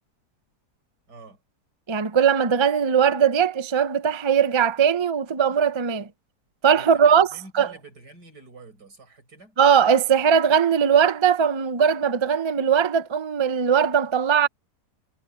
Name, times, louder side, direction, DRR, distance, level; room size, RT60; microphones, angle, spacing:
voice 1, 1.1-1.4 6.7-9.6, right 3 dB, 85° right, 6.9 m, -47 dB
voice 2, 1.9-6.1 6.6-7.3 7.6-7.7 9.6-14.5, right 7 dB, 35° right, 0.4 m, -20 dB
omnidirectional pair, 1.7 m